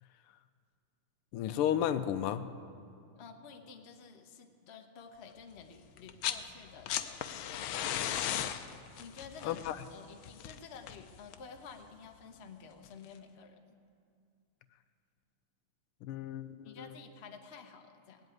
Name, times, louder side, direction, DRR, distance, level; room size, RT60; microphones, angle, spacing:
voice 1, 1.3-2.4 9.4-9.8 16.0-16.9, left 10 dB, 90° left, 11 dB, 1.6 m, -33 dB
voice 2, 3.1-7.6 9.0-9.6 9.9-13.8 16.6-18.2, left 5 dB, 45° left, 4 dB, 0.9 m, -51 dB
sound 1, 6.0-6.5 6.7-11.6 12.8-12.9, left 10 dB, 75° left, 1.4 m, -37 dB
18.0 x 8.1 x 9.2 m, 2.4 s
omnidirectional pair, 2.4 m